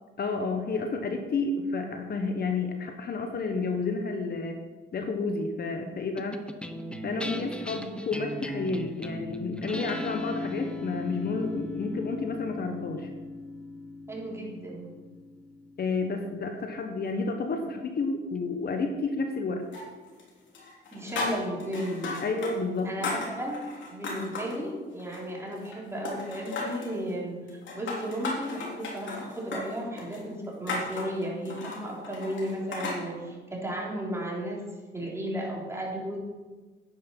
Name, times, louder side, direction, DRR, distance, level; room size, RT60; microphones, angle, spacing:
voice 1, 0.2-4.6 4.9-6.4 7.0-13.1 15.8-19.6 22.2-22.9, left 3 dB, 50° left, 5 dB, 1.4 m, -30 dB
sound 1, 6.2-16.8, left 1 dB, 5° left, 0.9 m, -38 dB
voice 2, 14.1-14.9 20.9-22.1 22.8-23.6 23.9-34.7 34.9-36.2, equal, 15° right, -3 dB, 3.8 m, -34 dB
sound 2, 19.7-20.3 20.5-22.5 22.8-24.6 25.0-25.8 26.1-26.9 27.5-33.0, left 3 dB, 70° left, 3.6 m, -35 dB
10.0 x 9.5 x 5.6 m, 1.3 s
cardioid pair, 90°, 20 cm